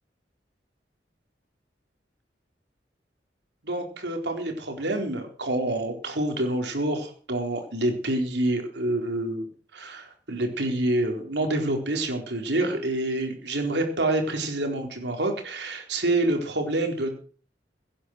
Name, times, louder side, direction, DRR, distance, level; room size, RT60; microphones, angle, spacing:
voice 1, 3.6-9.5 9.7-17.1, right 1 dB, 70° right, 4 dB, 4.2 m, -27 dB
17.0 x 10.0 x 6.4 m, 0.43 s
head